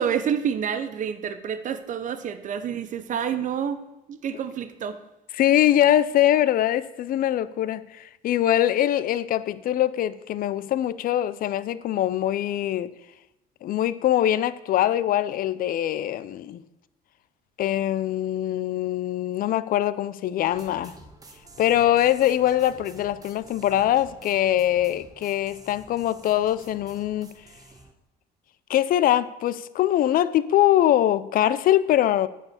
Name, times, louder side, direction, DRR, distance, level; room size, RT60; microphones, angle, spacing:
voice 1, 0.0-3.8 4.1-5.0, right 8 dB, 50° right, 0.8 m, -28 dB
voice 2, 5.3-12.9 13.6-16.6 17.6-20.9 21.6-27.3 28.7-32.3, left 12 dB, 55° left, 0.5 m, -23 dB
sound 1, 20.5-27.9, right 3 dB, 20° right, 1.1 m, -49 dB
9.2 x 4.8 x 7.1 m
cardioid pair, 110°, 17 cm